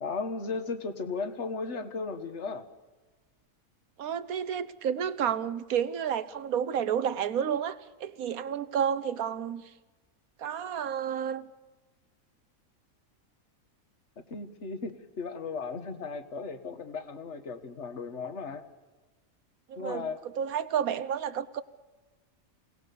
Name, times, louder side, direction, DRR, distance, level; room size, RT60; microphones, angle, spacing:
voice 1, 0.0-2.7 14.3-18.6 19.8-20.2, left 4 dB, 55° left, 9 dB, 1.8 m, -36 dB
voice 2, 4.0-9.6 10.4-11.5 19.7-20.1 20.4-21.6, right 8 dB, 85° right, 14 dB, 1.4 m, -30 dB
28.0 x 18.5 x 7.0 m, 1.2 s
omnidirectional pair, 1.5 m